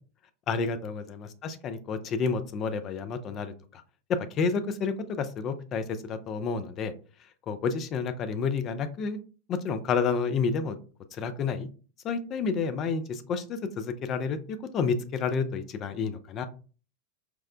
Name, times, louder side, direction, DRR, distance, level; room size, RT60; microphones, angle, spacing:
voice 1, 0.5-3.5 4.3-6.9 7.5-9.2 9.5-10.8 11.2-11.7 12.0-16.5, left 5 dB, 30° left, 9 dB, 0.3 m, -30 dB
4.5 x 2.1 x 2.4 m, 0.37 s
figure-of-eight pair, 90°, 0 cm